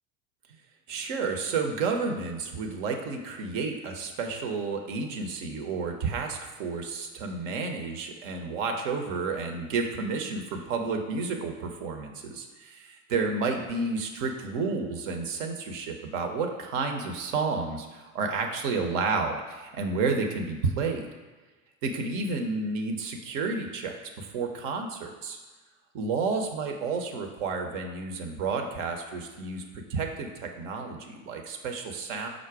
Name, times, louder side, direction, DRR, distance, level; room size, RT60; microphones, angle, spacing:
voice 1, 0.9-21.1 21.8-25.4 25.9-32.3, right 4 dB, 65° right, 4 dB, 0.7 m, -31 dB
4.9 x 2.1 x 4.6 m, 1.3 s
hypercardioid pair, 70°, 41 cm